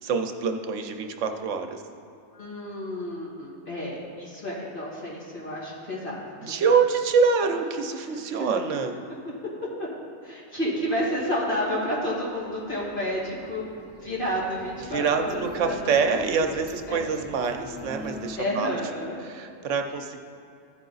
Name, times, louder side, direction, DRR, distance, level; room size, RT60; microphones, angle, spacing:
voice 1, 0.0-1.8 6.4-8.9 14.8-18.8 19.2-20.2, right 5 dB, 75° right, 5 dB, 1.0 m, -25 dB
voice 2, 2.3-6.7 9.8-9.9 10.2-13.6 14.0-15.9 16.4-16.5 16.9-17.1 18.4-19.2, equal, 45° left, -7 dB, 2.4 m, -30 dB
sound 1, 11.9-18.3, left 1 dB, 10° right, 1.2 m, -44 dB
14.5 x 5.6 x 3.9 m, 2.7 s
omnidirectional pair, 1.3 m